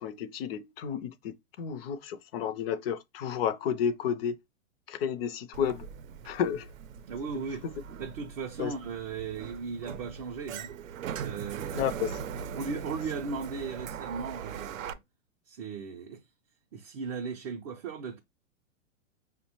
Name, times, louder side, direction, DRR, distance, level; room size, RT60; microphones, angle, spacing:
voice 1, 0.0-4.4 4.9-5.9 6.2-6.7 7.6-7.7 8.6-8.7 11.7-12.1, left 8 dB, 50° left, 0.5 m, -31 dB
Sliding door, 5.5-14.9, right 7 dB, 85° right, 0.5 m, -40 dB
voice 2, 7.1-7.6 8.0-10.7 11.2-11.9 12.5-15.0 15.5-16.2 16.7-18.2, right 5 dB, 30° right, 0.4 m, -37 dB
4.7 x 2.1 x 2.8 m
hypercardioid pair, 125°, 39 cm